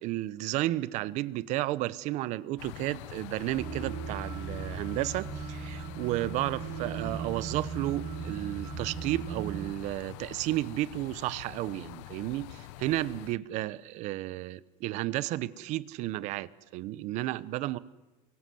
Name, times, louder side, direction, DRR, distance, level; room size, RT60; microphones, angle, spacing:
voice 1, 0.0-17.8, right 16 dB, 50° right, 1.1 m, -32 dB
Suburb fall night light traffic, 2.6-13.4, left 16 dB, 80° left, 0.9 m, -46 dB
sound 1, 3.6-9.7, right 6 dB, 30° right, 5.1 m, -38 dB
30.0 x 23.5 x 7.9 m
cardioid pair, 155°, 15 cm